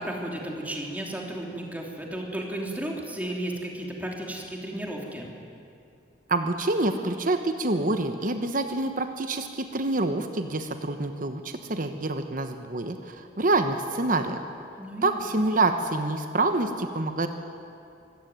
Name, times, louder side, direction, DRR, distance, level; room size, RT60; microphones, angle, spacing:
voice 1, 0.0-5.3 14.8-15.5, right 1 dB, 10° right, -1 dB, 3.1 m, -34 dB
voice 2, 6.3-14.4 15.0-17.3, right 2 dB, 50° right, 7 dB, 1.1 m, -27 dB
25.0 x 14.5 x 9.3 m, 2.5 s
head